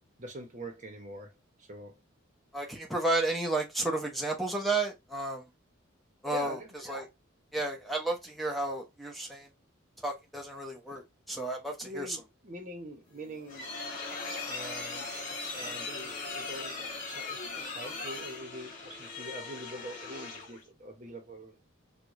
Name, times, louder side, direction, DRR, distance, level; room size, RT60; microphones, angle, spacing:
voice 1, 0.2-1.3 1.6-2.0 6.3-6.7 11.8-13.7 14.5-21.6, right 1 dB, 40° right, 1.0 m, -44 dB
voice 2, 2.5-5.5 6.2-6.6 6.8-7.1 7.5-9.5 10.0-12.2, right 2 dB, ahead, 0.7 m, -32 dB
sound 1, 13.1-20.6, left 3 dB, 40° left, 2.0 m, -39 dB
4.8 x 2.4 x 2.5 m
head